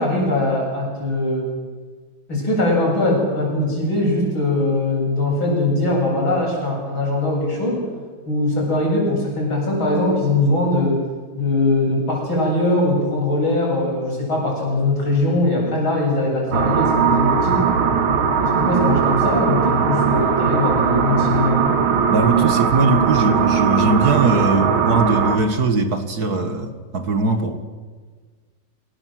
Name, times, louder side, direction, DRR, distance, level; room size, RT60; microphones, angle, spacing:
voice 1, 0.0-1.5 2.3-7.8 8.3-11.0 11.3-17.6 18.4-21.7, left 2 dB, 80° left, -3 dB, 9.0 m, -21 dB
sound 1, 16.5-25.4, right 6 dB, 90° right, 2.5 m, -19 dB
voice 2, 22.1-27.7, right 3 dB, 50° right, 8 dB, 2.2 m, -20 dB
28.5 x 17.0 x 7.7 m, 1.5 s
omnidirectional pair, 2.2 m